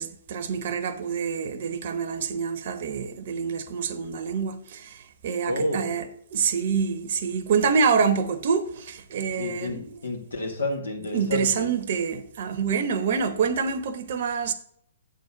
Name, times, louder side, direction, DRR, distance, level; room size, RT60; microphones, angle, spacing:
voice 1, 0.0-10.0 11.1-14.5, right 6 dB, 55° right, 0.7 m, -26 dB
voice 2, 5.5-5.9 9.4-11.7, left 1 dB, 90° left, 1.9 m, -30 dB
8.1 x 3.9 x 6.2 m
hypercardioid pair, 130°, 0 cm